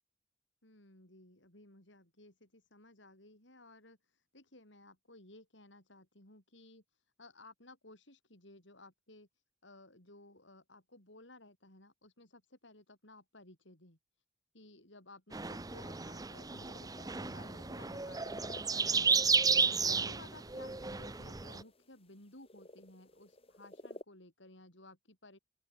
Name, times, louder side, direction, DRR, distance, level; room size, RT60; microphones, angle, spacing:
voice 1, 0.6-14.0 14.5-25.4, left 2 dB, 65° left, 7.7 m, -57 dB
sound 1, 15.3-21.6, right 5 dB, 20° right, 0.8 m, -33 dB
sound 2, 16.5-24.0, left 1 dB, 30° left, 7.1 m, -54 dB
open air
head